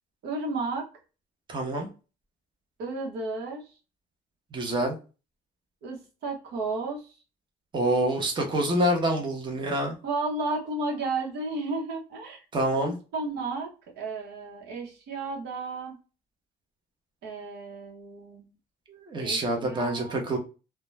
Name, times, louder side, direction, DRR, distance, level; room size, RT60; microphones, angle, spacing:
voice 1, 0.2-0.8 2.8-3.6 5.8-7.1 10.0-12.4 12.8-13.7 14.0-16.0 17.2-18.5 19.2-20.2, right 3 dB, 80° right, 1 dB, 0.9 m, -33 dB
voice 2, 1.5-1.9 4.5-5.0 7.7-9.9 12.5-13.0 18.9-20.4, right 1 dB, 30° right, 2 dB, 0.8 m, -26 dB
2.3 x 2.2 x 3.0 m, 0.32 s
cardioid pair, 110°, 17 cm